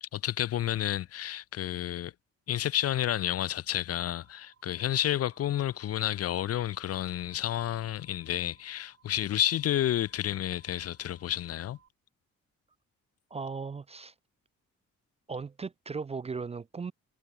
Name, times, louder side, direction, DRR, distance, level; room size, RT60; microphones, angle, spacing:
voice 1, 0.0-2.1 2.5-11.8, left 12 dB, 55° left, 0.5 m, -30 dB
sound 1, 3.9-11.9, right 7 dB, 50° right, 3.7 m, -65 dB
voice 2, 13.3-14.1 15.3-16.9, right 5 dB, 20° right, 0.4 m, -37 dB
cardioid pair, 120°, 30 cm